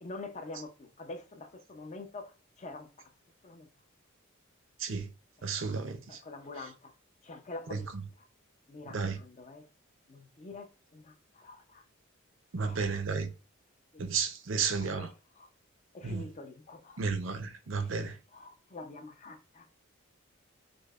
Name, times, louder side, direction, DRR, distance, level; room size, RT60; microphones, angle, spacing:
voice 1, 0.0-3.1 3.4-3.7 5.4-5.8 6.1-6.9 7.2-7.9 8.2-8.3 8.7-9.7 10.1-10.7 10.9-11.8 12.6-12.9 13.9-14.1 14.8-15.1 15.3-15.5 15.9-17.1 17.8-19.7, left 2 dB, 35° left, 0.6 m, -46 dB
voice 2, 5.4-6.2 6.6-6.7 7.7-8.1 8.9-9.2 12.5-13.3 14.0-15.1 16.0-16.3 17.0-18.2, right 5 dB, 65° right, 0.6 m, -33 dB
5.1 x 2.1 x 2.4 m
head